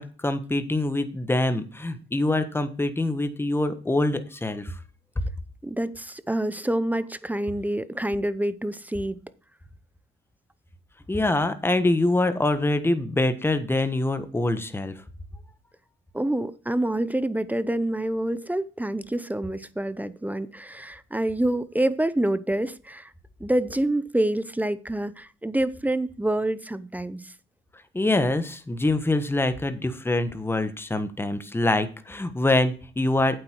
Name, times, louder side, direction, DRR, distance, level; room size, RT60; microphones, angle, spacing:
voice 1, 0.0-4.7 11.1-15.0 27.9-33.4, left 2 dB, 10° left, 1.4 m, -25 dB
voice 2, 5.6-9.2 16.1-23.1 23.4-27.3, right 1 dB, 10° right, 0.8 m, -27 dB
8.8 x 7.9 x 4.6 m
cardioid pair, 90°, 20 cm